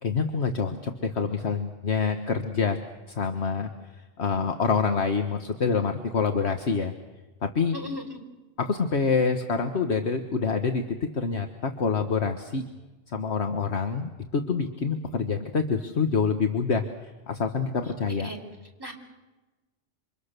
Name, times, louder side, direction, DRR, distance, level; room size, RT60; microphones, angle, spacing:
voice 1, 0.0-2.8 3.1-3.7 4.2-6.9 7.4-7.7 8.6-12.6 13.1-16.9 17.3-18.3, left 5 dB, 65° left, 6 dB, 1.6 m, -26 dB
voice 2, 7.7-8.2 18.2-18.4 18.8-18.9, equal, 20° right, 2 dB, 4.1 m, -36 dB
27.5 x 25.5 x 6.8 m, 1.2 s
omnidirectional pair, 1.2 m